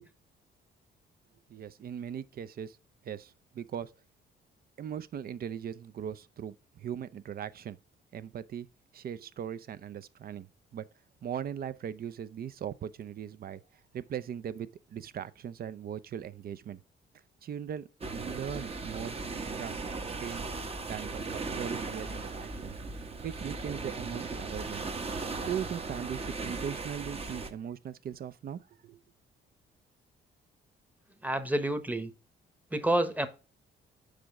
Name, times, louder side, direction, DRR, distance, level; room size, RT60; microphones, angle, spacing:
voice 1, 1.5-2.8 3.0-3.9 4.8-7.8 8.1-8.7 8.9-10.8 11.2-13.6 13.9-16.8 17.4-19.2 19.6-19.8 20.2-20.5 20.9-24.9 25.4-29.0, right 9 dB, 50° right, 0.5 m, -39 dB
sound 1, 18.0-27.5, right 3 dB, 30° right, 0.9 m, -37 dB
voice 2, 31.2-32.1 32.7-33.3, right 1 dB, 10° right, 1.0 m, -28 dB
6.2 x 5.0 x 3.5 m
cardioid pair, 90°, 20 cm